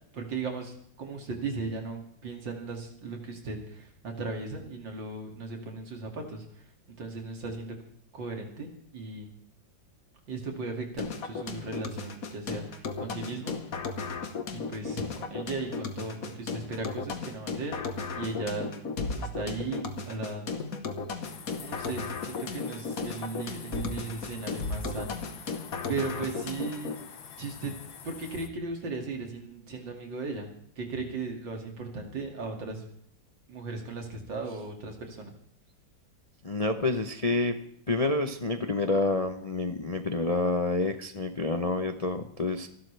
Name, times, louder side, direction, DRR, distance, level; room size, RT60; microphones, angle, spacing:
voice 1, 0.1-6.6 7.0-7.8 8.1-9.3 10.3-13.5 14.5-17.8 18.2-18.7 19.2-20.5 21.6-25.5 25.9-26.9 27.4-27.8 28.0-30.5 30.8-32.8 33.5-35.3, right 3 dB, 70° right, 2 dB, 3.1 m, -37 dB
sound 1, 11.0-27.0, left 4 dB, 50° left, 1.6 m, -35 dB
sound 2, 21.2-28.5, left 7 dB, 90° left, 2.0 m, -47 dB
voice 2, 36.4-37.6 37.9-42.7, left 2 dB, 35° left, 6 dB, 0.6 m, -28 dB
27.5 x 12.0 x 3.4 m, 0.66 s
omnidirectional pair, 2.1 m